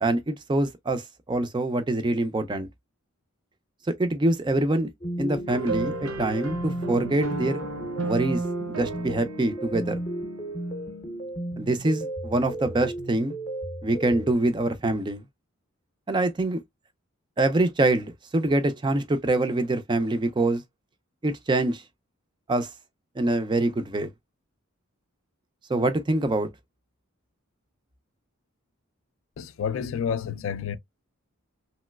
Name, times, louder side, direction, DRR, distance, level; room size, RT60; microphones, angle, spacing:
voice 1, 0.0-2.7 4.0-4.9 5.2-7.6 8.0-8.4 8.7-10.0 11.6-13.3 13.8-15.2 16.1-16.6 17.4-20.6 21.2-21.8 22.5-22.7 23.2-24.1 25.7-26.5, right 2 dB, 20° right, 0.3 m, -25 dB
sound 1, 5.0-14.3, right 1 dB, 30° left, 0.6 m, -34 dB
sound 2, 5.5-11.1, right 3 dB, 70° right, 0.7 m, -35 dB
voice 2, 29.4-30.8, left 7 dB, 65° left, 0.3 m, -29 dB
3.0 x 2.9 x 2.2 m
head